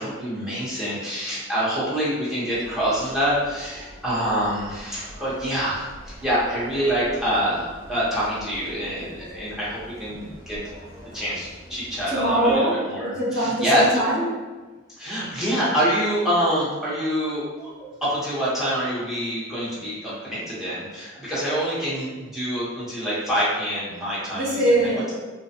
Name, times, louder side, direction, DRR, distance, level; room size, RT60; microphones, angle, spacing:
voice 1, 0.0-10.6 11.1-12.6 12.9-13.9 15.0-24.6, equal, ahead, -9 dB, 0.7 m, -26 dB
sound 1, 2.5-12.6, equal, 75° right, 1.2 m, -44 dB
voice 2, 12.1-14.3 24.3-25.1, right 1 dB, 50° right, -5 dB, 0.7 m, -22 dB
2.4 x 2.2 x 2.6 m, 1.3 s
head